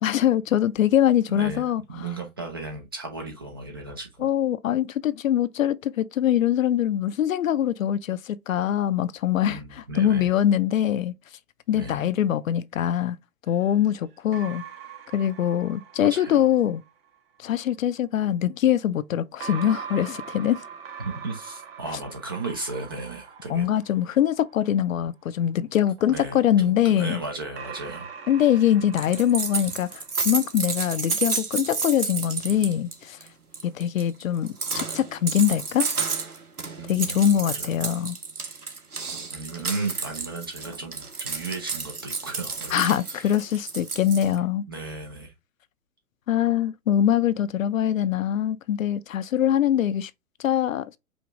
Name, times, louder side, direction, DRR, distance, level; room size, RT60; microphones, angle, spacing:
voice 1, 0.0-1.8 4.2-11.1 11.7-13.2 13.5-14.6 15.1-16.8 17.4-20.6 23.5-27.2 28.3-33.2 33.6-35.9 36.9-38.2 42.7-44.6 46.3-50.1 50.4-50.9, left 10 dB, 65° left, 0.5 m, -23 dB
voice 2, 1.3-1.6 1.9-4.3 9.5-10.3 11.7-12.1 16.0-16.5 21.0-23.7 26.1-28.1 36.8-37.7 39.3-43.3 44.7-45.3, right 3 dB, 20° right, 0.4 m, -35 dB
sound 1, 13.5-16.9 19.4-24.8 26.0-30.6, right 7 dB, 40° right, 1.1 m, -43 dB
sound 2, 28.9-32.9 33.2-33.3 33.5-44.3, right 4 dB, 85° right, 1.2 m, -31 dB
5.2 x 2.4 x 3.5 m
figure-of-eight pair, 120°, 44 cm